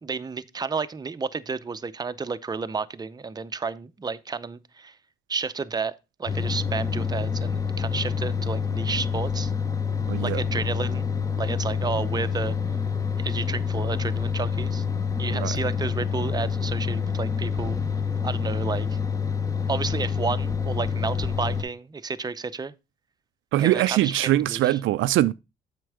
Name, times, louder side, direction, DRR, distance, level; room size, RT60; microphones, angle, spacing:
voice 1, 0.0-5.0 5.3-5.9 6.2-9.5 10.2-11.1 11.4-12.6 13.2-14.8 15.2-17.8 18.2-19.0 19.7-22.7 23.6-24.8, right 4 dB, 20° right, 0.6 m, -31 dB
sound 1, 6.3-21.6, left 6 dB, 15° left, 0.8 m, -27 dB
voice 2, 10.1-10.4 15.3-15.5 23.5-25.3, right 15 dB, 80° right, 0.4 m, -22 dB
7.7 x 5.3 x 4.8 m
cardioid pair, 90°, 20 cm